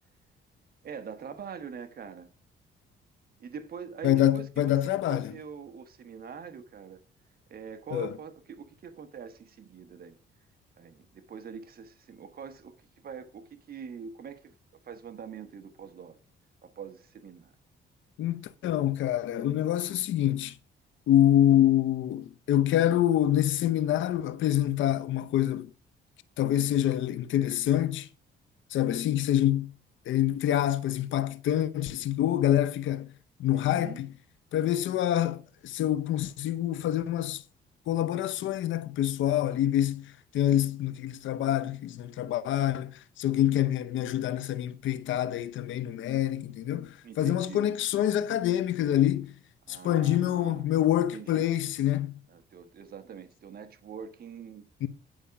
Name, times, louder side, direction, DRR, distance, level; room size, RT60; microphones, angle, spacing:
voice 1, 0.8-2.3 3.4-7.0 7.5-10.2 10.8-14.5 14.8-16.2 16.6-17.5 33.5-34.0 47.0-47.6 49.7-50.7 51.1-51.5 52.3-54.6, right 7 dB, 50° right, 1.2 m, -43 dB
voice 2, 4.0-5.3 7.9-8.1 18.2-20.5 21.1-25.7 26.4-28.1 28.7-29.7 30.1-33.1 33.4-34.1 34.5-37.4 37.9-49.3 49.7-52.2 54.8-54.9, left 12 dB, 75° left, 0.7 m, -26 dB
10.5 x 5.0 x 5.7 m
cardioid pair, 90°, 20 cm